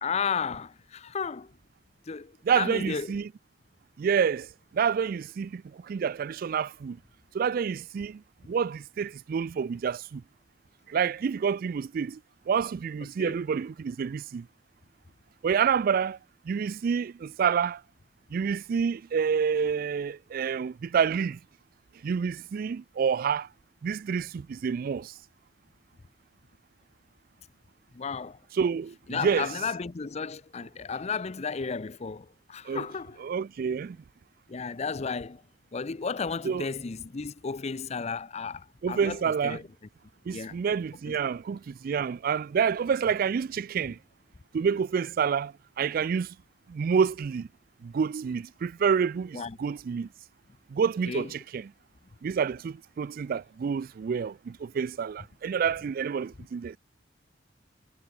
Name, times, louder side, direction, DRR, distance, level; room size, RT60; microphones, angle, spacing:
voice 1, 0.0-1.5 2.1-3.1 13.2-13.3 27.9-28.4 29.1-33.2 34.5-35.4 35.7-39.2 39.4-39.6 40.3-40.6 49.3-49.6 51.1-51.3, left 5 dB, 35° left, 0.5 m, -33 dB
voice 2, 2.4-3.3 4.0-4.5 4.7-7.0 7.3-10.2 10.9-12.2 12.5-14.5 15.4-16.2 16.5-17.8 18.3-21.4 22.0-23.5 23.8-25.1 28.5-29.5 32.7-32.9 33.2-34.0 36.4-36.7 38.8-39.6 40.3-44.0 44.5-46.3 46.7-47.5 47.8-50.1 50.7-51.7 52.2-56.8, right 6 dB, 50° right, 0.3 m, -28 dB
head